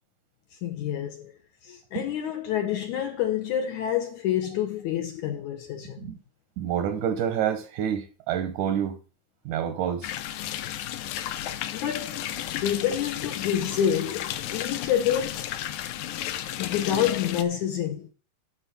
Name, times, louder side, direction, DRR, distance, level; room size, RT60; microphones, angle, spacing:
voice 1, 0.6-1.3 1.6-6.1 11.7-12.3 12.6-15.5 16.6-18.1, left 10 dB, 70° left, 1.9 m, -28 dB
voice 2, 6.6-9.0 9.5-10.1, right 9 dB, 70° right, 1.9 m, -28 dB
sound 1, 10.0-17.4, left 12 dB, 85° left, 1.7 m, -33 dB
11.5 x 4.4 x 6.9 m
omnidirectional pair, 4.5 m